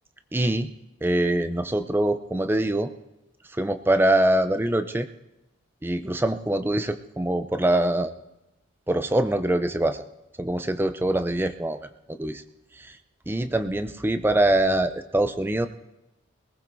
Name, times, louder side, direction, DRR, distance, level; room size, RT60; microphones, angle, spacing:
voice 1, 0.3-0.7 1.0-2.9 3.5-5.1 5.8-8.1 8.9-10.0 10.4-12.4 12.8-12.9 13.3-15.7, right 1 dB, 10° right, 9 dB, 0.5 m, -24 dB
21.0 x 18.0 x 2.6 m, 0.93 s
head